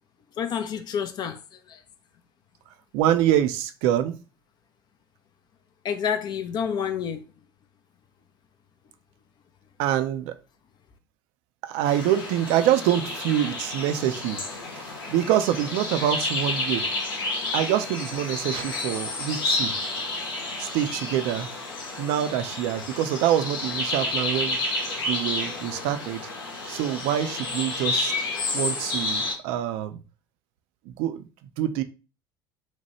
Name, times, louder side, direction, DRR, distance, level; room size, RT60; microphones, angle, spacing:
voice 1, 0.4-1.4 1.7-1.8 5.8-7.3, left 7 dB, 35° left, 0.4 m, -28 dB
voice 2, 2.9-4.2 9.8-10.4 11.6-14.4 14.8-16.9 17.5-19.8 20.6-21.5 22.0-24.6 25.1-26.3 26.7-28.1 28.5-30.0 31.0-31.2 31.6-31.8, right 11 dB, 50° right, 0.4 m, -25 dB
sound 1, 11.9-29.3, left 2 dB, 70° left, 0.8 m, -30 dB
2.8 x 2.2 x 2.9 m
figure-of-eight pair, 65°, 12 cm